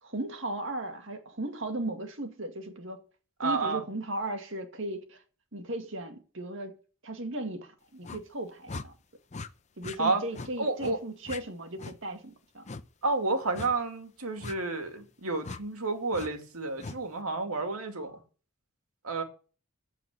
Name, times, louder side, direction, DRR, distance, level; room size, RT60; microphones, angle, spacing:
voice 1, 0.0-3.0 3.4-5.2 5.5-6.7 7.0-8.9 9.8-12.7, right 2 dB, 60° right, 2.1 m, -36 dB
voice 2, 3.4-3.8 10.0-10.2 10.6-11.0 13.0-18.2 19.0-19.2, right 3 dB, 85° right, 2.4 m, -30 dB
sound 1, 8.0-8.2 8.7-8.9 9.3-9.5 9.8-10.0 10.3-10.5 10.8-11.0 11.3-11.4 11.8-12.0 12.7-12.8 13.5-13.7 14.4-14.6 15.4-15.6 16.1-16.3 16.8-17.0, left 3 dB, 30° left, 0.6 m, -40 dB
14.0 x 4.8 x 7.9 m
head